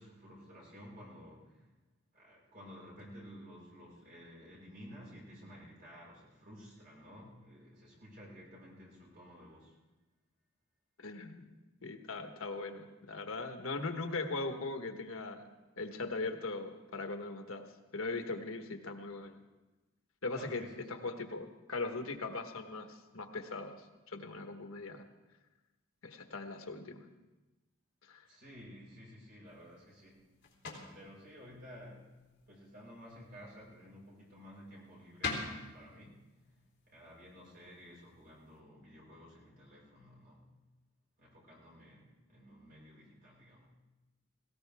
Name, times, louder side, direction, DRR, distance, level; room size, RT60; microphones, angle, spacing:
voice 1, 0.0-1.7 2.1-9.8 20.3-21.1 24.3-24.4 28.2-30.2 30.9-32.1 32.5-36.2 36.5-36.6 36.8-40.4 41.2-43.7, equal, 45° right, -5 dB, 5.6 m, -53 dB
voice 2, 11.0-11.5 11.8-17.7 17.9-19.4 20.2-20.6 20.9-23.8 24.1-25.0 26.0-27.1 28.1-28.3, left 3 dB, 85° left, 6 dB, 1.3 m, -40 dB
sound 1, 29.4-38.6, left 4 dB, 55° left, 3.1 m, -47 dB
19.0 x 17.0 x 3.5 m, 1.1 s
head